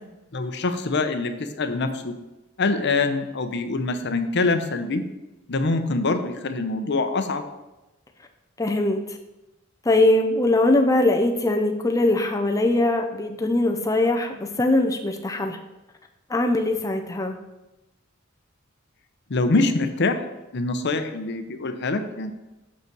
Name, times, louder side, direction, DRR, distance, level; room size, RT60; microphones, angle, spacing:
voice 1, 0.3-2.1 2.6-5.0 5.5-7.4 19.3-20.2 20.5-22.3, left 3 dB, 55° left, 8 dB, 0.8 m, -24 dB
voice 2, 8.6-9.2 9.9-15.6 16.3-17.4, left 2 dB, 15° left, 3 dB, 0.6 m, -21 dB
6.7 x 5.5 x 6.0 m, 1.0 s
head